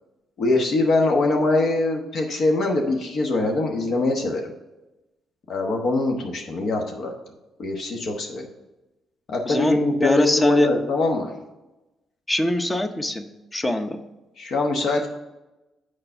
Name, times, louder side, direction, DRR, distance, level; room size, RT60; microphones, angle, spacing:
voice 1, 0.4-4.5 5.5-7.1 7.6-8.4 9.3-11.3 14.4-15.1, left 2 dB, 65° left, 2 dB, 1.0 m, -23 dB
voice 2, 9.5-10.7 12.3-13.3 13.5-14.0, left 1 dB, 20° left, 8 dB, 0.7 m, -23 dB
6.6 x 4.8 x 5.5 m, 1.0 s
cardioid pair, 90°, 0 cm